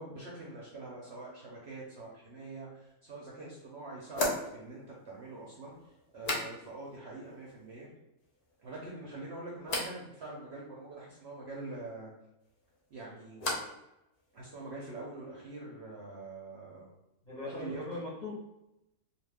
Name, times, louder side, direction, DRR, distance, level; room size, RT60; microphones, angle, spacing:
voice 1, 0.0-7.9 8.6-12.1 12.9-13.5 14.3-16.9 17.5-17.8, right 2 dB, 60° right, -4 dB, 0.7 m, -45 dB
sound 1, 2.9-3.0 4.1-7.0 7.2-7.8 8.2-8.8 9.6-10.0 12.4-13.9 14.1-14.7, left 2 dB, 70° left, 0.4 m, -38 dB
voice 2, 17.2-18.3, left 2 dB, 40° left, -7 dB, 0.7 m, -39 dB
2.4 x 2.4 x 3.4 m, 0.89 s
omnidirectional pair, 1.6 m